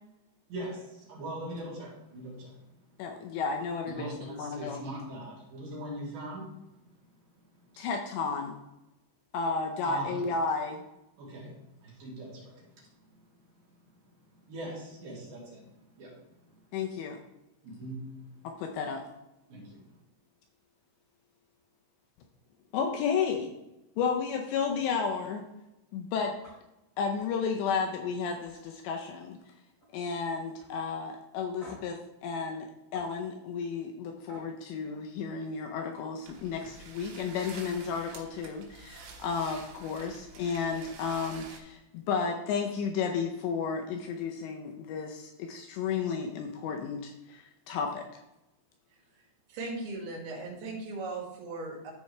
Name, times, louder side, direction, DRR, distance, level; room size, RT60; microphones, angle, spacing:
voice 1, 0.5-2.5 3.9-6.5 7.7-7.8 9.8-10.2 11.2-11.6 11.8-12.7 14.5-16.2 17.6-18.1 19.5-19.8, right 1 dB, 50° right, -5 dB, 3.7 m, -40 dB
voice 2, 3.0-4.8 7.8-8.6 9.3-10.9 16.7-17.2 18.4-19.0 22.7-23.5 24.0-25.4 25.9-26.3 27.0-29.4 29.9-32.7 32.9-48.2, left 5 dB, 80° left, 3 dB, 2.7 m, -32 dB
sound 1, 26.4-26.6 26.9-27.3 27.7-27.9 28.3-29.4 29.7-30.1 30.6-30.7 31.6-32.0 32.9-33.1 34.3-34.5 36.2-36.3 36.5-36.8, left 1 dB, 35° left, 3.2 m, -52 dB
sound 2, 36.2-41.6, right 5 dB, 85° right, 3.8 m, -48 dB
voice 3, 49.5-51.9, right 3 dB, 70° right, -3 dB, 4.3 m, -38 dB
13.5 x 4.6 x 3.2 m, 0.94 s
omnidirectional pair, 5.5 m